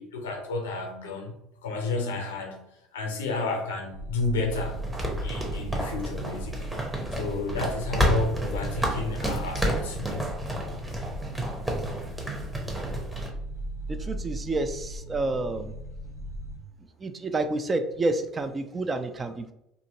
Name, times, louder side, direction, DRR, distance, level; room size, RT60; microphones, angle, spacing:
voice 1, 0.0-1.3 1.6-2.6 2.9-4.8 5.2-6.7 7.2-10.3, left 3 dB, 75° left, 0.6 m, -31 dB
sound 1, 3.9-16.6, right 1 dB, 80° right, 0.7 m, -37 dB
sound 2, 4.5-13.3, equal, 10° right, 0.8 m, -30 dB
voice 2, 13.9-15.7 17.0-19.5, right 2 dB, 30° right, 0.4 m, -29 dB
2.8 x 2.5 x 2.8 m
figure-of-eight pair, 60°, 0 cm